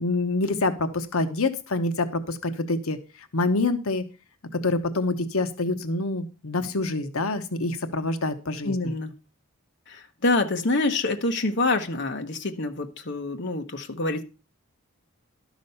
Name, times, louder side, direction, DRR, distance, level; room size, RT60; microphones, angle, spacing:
voice 1, 0.0-3.0 3.3-4.0 4.6-8.7, left 2 dB, 75° left, 9 dB, 1.0 m, -26 dB
voice 2, 8.6-9.1 9.9-14.2, left 2 dB, 50° left, 5 dB, 1.0 m, -26 dB
12.0 x 6.2 x 5.5 m, 0.32 s
head